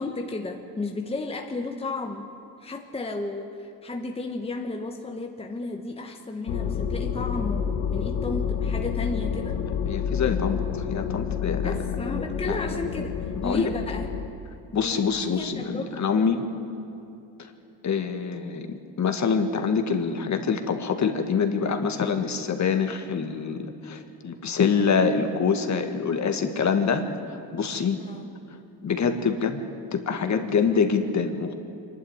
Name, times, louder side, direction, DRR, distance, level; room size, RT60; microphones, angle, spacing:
voice 1, 0.0-2.3 2.6-9.6 11.6-14.1 14.7-16.3 28.0-28.3, left 2 dB, 15° left, 3 dB, 1.3 m, -33 dB
sound 1, 6.5-14.3, left 7 dB, 70° left, 1.6 m, -29 dB
voice 2, 9.9-11.8 12.5-12.6 13.4-13.7 14.7-16.5 17.8-28.0 28.8-29.6 29.9-31.5, left 6 dB, 40° left, 6 dB, 1.8 m, -25 dB
25.0 x 11.5 x 9.9 m, 2.7 s
cardioid pair, 105°, 43 cm